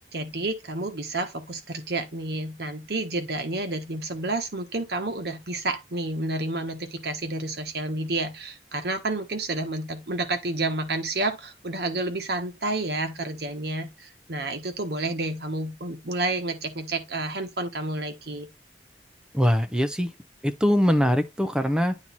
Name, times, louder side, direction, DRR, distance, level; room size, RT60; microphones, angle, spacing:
voice 1, 0.1-18.5, right 2 dB, 65° right, 1.2 m, -30 dB
voice 2, 19.3-20.1 20.4-22.0, equal, 5° right, 0.7 m, -22 dB
8.9 x 3.0 x 4.0 m
head